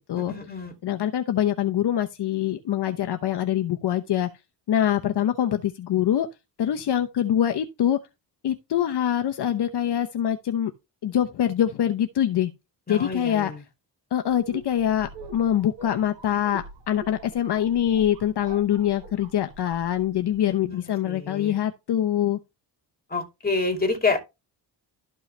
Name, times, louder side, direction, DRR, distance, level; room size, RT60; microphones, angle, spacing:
voice 1, 0.1-0.7 12.9-13.6 20.6-21.5 23.1-24.2, left 3 dB, 20° left, 2.7 m, -28 dB
voice 2, 0.8-4.3 4.7-6.3 6.6-8.0 8.4-10.7 11.0-12.5 12.9-13.5 14.1-22.4, left 10 dB, 65° left, 1.0 m, -24 dB
sound 1, 14.3-20.5, right 1 dB, 65° right, 6.7 m, -44 dB
13.0 x 5.5 x 3.3 m
cardioid pair, 115°, 44 cm